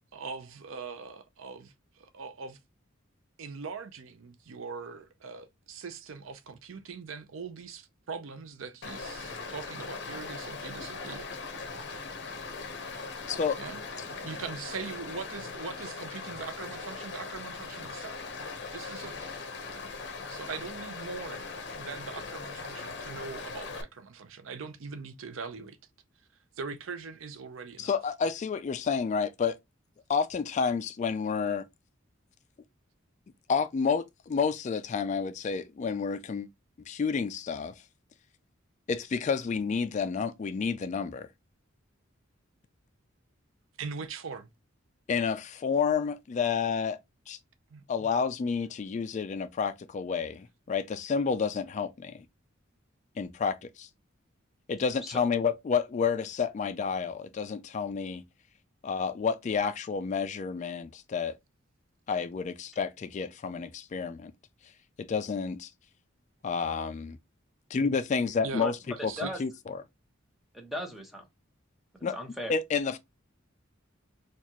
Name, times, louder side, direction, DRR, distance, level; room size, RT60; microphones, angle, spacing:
voice 1, 0.1-2.6 3.4-11.3 13.6-13.8 14.2-18.2 18.7-19.3 20.3-21.4 21.7-25.8 26.6-27.9 43.8-44.5 47.7-48.1 68.4-68.7 69.1-69.3, right 5 dB, 85° right, 0.6 m, -41 dB
Stream, 8.8-23.8, left 4 dB, 60° left, 0.8 m, -40 dB
voice 2, 13.3-13.6 27.8-29.6 30.1-31.6 33.5-36.5 36.9-37.8 38.9-41.3 45.1-47.0 47.3-47.4 47.9-52.2 53.2-53.9 54.7-58.2 58.8-61.3 62.1-64.3 65.0-65.7 66.4-67.2 67.7-68.8 69.0-69.8 72.0-72.2 72.5-73.0, left 5 dB, 35° left, 0.3 m, -30 dB
voice 3, 70.5-71.2 72.1-72.5, equal, ahead, 1.0 m, -37 dB
4.5 x 2.4 x 2.9 m
head